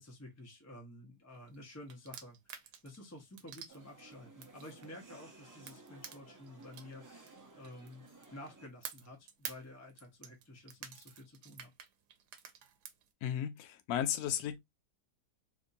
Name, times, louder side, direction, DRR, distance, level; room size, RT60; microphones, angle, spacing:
voice 1, 0.0-8.1 8.3-11.7, left 1 dB, 15° left, 0.6 m, -51 dB
sound 1, 1.5-5.2 5.7-8.5 8.8-13.1, right 8 dB, 90° right, 1.2 m, -49 dB
sound 2, 3.7-8.7, right 3 dB, 30° right, 0.3 m, -57 dB
voice 2, 13.2-14.6, left 10 dB, 75° left, 1.1 m, -34 dB
3.5 x 2.6 x 2.6 m
omnidirectional pair, 1.7 m